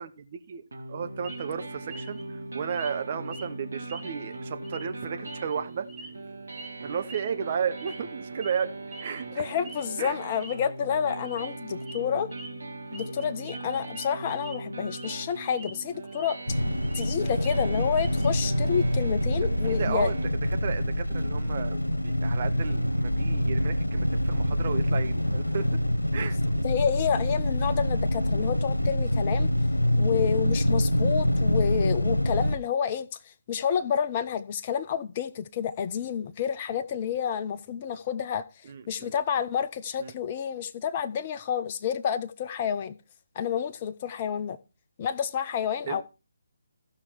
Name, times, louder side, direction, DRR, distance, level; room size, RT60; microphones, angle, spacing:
voice 1, 0.0-5.9 6.8-8.7 9.0-9.6 10.0-10.2 19.6-25.8 26.1-26.4 38.6-39.1 40.0-40.1 45.9-46.0, right 7 dB, 35° right, 0.9 m, -34 dB
sound 1, 0.7-20.3, right 2 dB, 65° right, 2.2 m, -40 dB
sound 2, 1.2-1.5 1.9-2.2 2.7-3.0 3.3-3.5 3.9-4.4 4.6-4.8 5.3-6.1 6.5-6.7 7.1-7.3 7.8-8.1 8.4-8.6 8.9-9.2 9.6-9.9 10.2-10.5 11.2-11.5 11.8-12.0 12.3-12.5 12.9-14.6 14.9-15.1 15.4-16.3 16.6-18.3, right 2 dB, ahead, 1.3 m, -45 dB
voice 2, 9.3-12.3 12.9-16.6 16.9-20.1 26.6-29.5 30.0-33.1 33.5-38.4 38.9-42.9 43.4-44.6 45.0-46.0, left 8 dB, 30° left, 0.6 m, -29 dB
sound 3, 16.5-32.6, left 1 dB, 85° left, 1.1 m, -26 dB
14.5 x 5.8 x 4.5 m
figure-of-eight pair, 145°, 0 cm